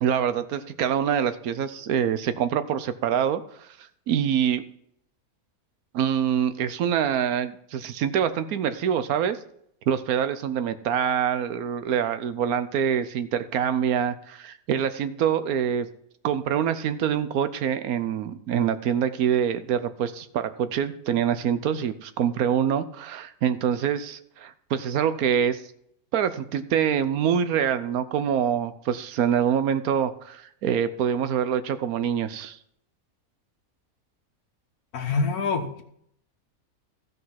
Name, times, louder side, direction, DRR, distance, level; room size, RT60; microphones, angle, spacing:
voice 1, 0.0-3.7 4.1-4.6 5.9-9.4 9.9-15.9 16.2-25.6 26.1-32.6, right 8 dB, 75° right, 12 dB, 1.2 m, -25 dB
voice 2, 34.9-35.8, left 4 dB, 80° left, 6 dB, 1.6 m, -26 dB
15.0 x 5.4 x 5.8 m, 0.70 s
omnidirectional pair, 1.6 m